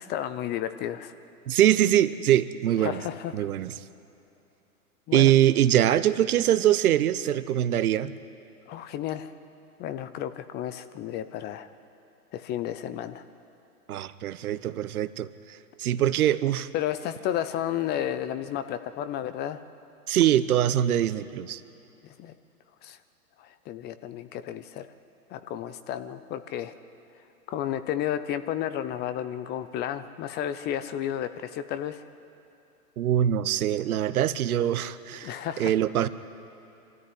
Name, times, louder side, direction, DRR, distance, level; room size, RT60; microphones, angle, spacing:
voice 1, 0.1-1.1 2.8-3.5 5.1-5.3 8.7-9.3 9.8-11.7 12.3-13.2 16.7-19.6 22.0-22.3 22.8-23.0 23.4-24.9 25.3-26.7 27.5-32.0 35.2-35.7, left 11 dB, 20° left, 12 dB, 0.6 m, -32 dB
voice 2, 1.5-3.0 3.3-3.7 5.1-8.2 13.9-16.7 20.1-21.6 33.0-36.1, right 11 dB, 70° right, 14 dB, 1.0 m, -23 dB
24.5 x 14.0 x 9.6 m, 2.8 s
hypercardioid pair, 115°, 46 cm